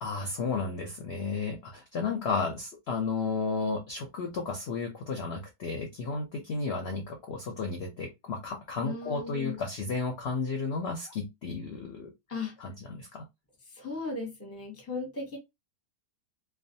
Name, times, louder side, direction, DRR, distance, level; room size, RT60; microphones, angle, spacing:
voice 1, 0.0-12.1 12.6-13.2, left 4 dB, 60° left, 0.7 m, -33 dB
voice 2, 8.8-9.7 12.3-12.5 13.7-15.4, left 3 dB, 15° left, 0.7 m, -36 dB
2.4 x 2.2 x 2.6 m
omnidirectional pair, 1.6 m